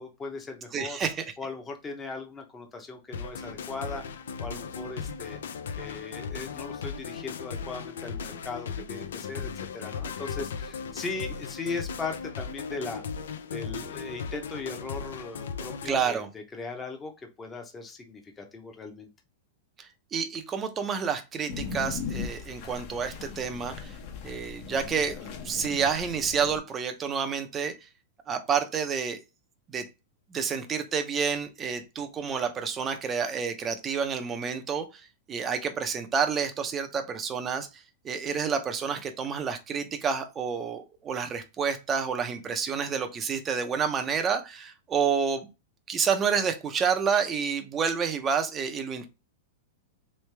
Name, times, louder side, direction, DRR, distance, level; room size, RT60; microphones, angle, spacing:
voice 1, 0.0-1.0 1.4-5.4 5.8-13.0 13.5-19.1, left 4 dB, 15° left, 3 dB, 0.8 m, -38 dB
voice 2, 0.7-1.3 15.8-16.3 19.8-24.0 24.2-27.7 28.3-29.2 29.7-29.9 30.3-35.0 35.3-37.7 38.0-45.5 45.9-49.1, right 6 dB, 20° right, 7 dB, 0.6 m, -29 dB
sound 1, 3.1-16.1, left 6 dB, 90° left, 0.5 m, -37 dB
sound 2, 21.5-26.6, left 6 dB, 40° left, 0.8 m, -38 dB
3.4 x 3.2 x 3.3 m, 0.27 s
supercardioid pair, 155°, 0 cm